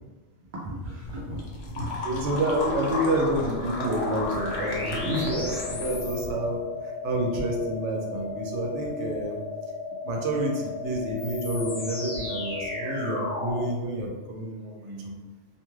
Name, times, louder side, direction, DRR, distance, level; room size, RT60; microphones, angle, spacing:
voice 1, 0.5-2.2 3.0-3.1 14.8-15.2, equal, 60° right, -5 dB, 0.5 m, -37 dB
sound 1, 1.0-6.3, left 2 dB, 80° left, 0.9 m, -34 dB
voice 2, 2.0-9.4 10.0-15.1, right 1 dB, 75° right, 0 dB, 0.9 m, -29 dB
sound 2, 3.8-13.7, left 3 dB, 55° left, 1.1 m, -34 dB
2.5 x 2.3 x 3.0 m, 1.2 s
omnidirectional pair, 1.3 m